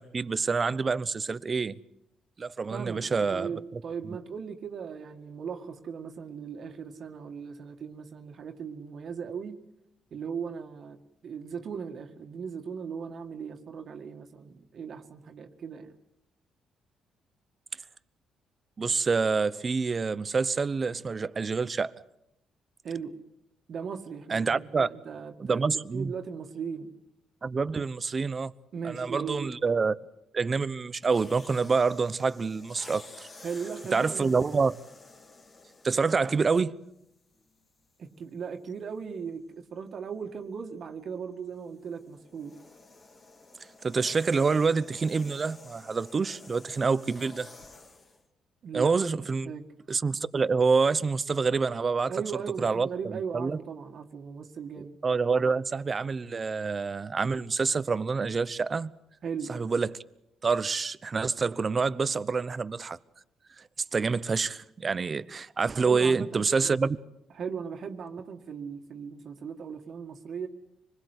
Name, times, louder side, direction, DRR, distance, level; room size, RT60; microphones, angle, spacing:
voice 1, 0.0-1.7 2.4-3.5 18.8-21.9 24.3-24.9 25.4-26.1 27.4-28.5 28.8-29.9 30.3-33.3 33.9-34.7 35.8-36.8 43.8-47.5 48.7-49.5 49.9-52.1 52.6-52.9 53.3-53.6 55.0-58.9 59.5-60.0 60.4-63.0 63.9-67.0, right 4 dB, 35° right, 0.9 m, -27 dB
voice 2, 2.7-9.6 10.1-11.0 11.2-16.0 22.8-23.2 23.7-26.9 28.7-29.5 33.4-34.3 38.0-42.5 48.6-48.9 49.4-49.6 52.1-55.0 59.2-59.6 65.8-66.8 67.3-70.5, right 6 dB, 60° right, 2.0 m, -38 dB
sound 1, 31.0-36.5 37.4-37.6 41.5-48.2, left 3 dB, 40° left, 3.6 m, -51 dB
25.5 x 20.5 x 8.1 m
cardioid pair, 90°, 0 cm